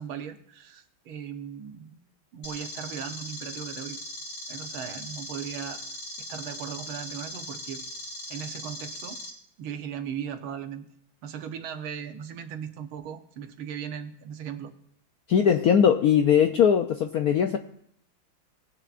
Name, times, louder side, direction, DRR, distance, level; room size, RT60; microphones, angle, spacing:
voice 1, 0.0-2.0 2.3-4.0 4.5-5.8 6.3-7.8 8.3-9.2 9.6-10.9 11.2-14.7, right 8 dB, 80° right, 7 dB, 1.8 m, -37 dB
sound 1, 2.4-9.3, left 1 dB, 45° left, 2.6 m, -39 dB
voice 2, 15.3-17.6, left 8 dB, 75° left, 6 dB, 0.8 m, -20 dB
19.5 x 10.0 x 2.5 m, 0.66 s
omnidirectional pair, 2.3 m